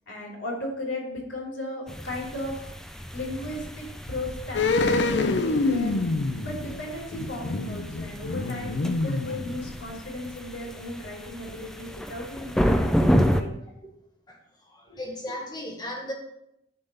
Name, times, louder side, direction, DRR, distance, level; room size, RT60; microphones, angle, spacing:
voice 1, 0.1-2.6 3.1-6.0 6.4-13.5 14.9-15.0, left 1 dB, 90° left, -2 dB, 3.1 m, -36 dB
sound 1, 1.9-13.4, equal, 5° left, 0.4 m, -30 dB
sound 2, 4.5-10.0 10.3-10.4, left 3 dB, 65° left, 0.5 m, -26 dB
voice 2, 14.3-16.1, left 1 dB, 20° left, 1 dB, 1.5 m, -36 dB
10.5 x 3.7 x 5.5 m, 0.80 s
head